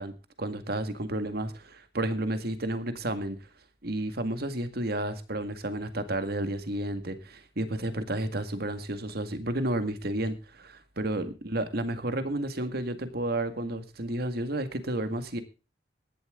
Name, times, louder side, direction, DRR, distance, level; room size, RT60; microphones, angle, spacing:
voice 1, 0.0-3.4 3.8-15.4, right 1 dB, 60° right, 10 dB, 1.9 m, -31 dB
17.0 x 11.5 x 3.7 m, 0.31 s
head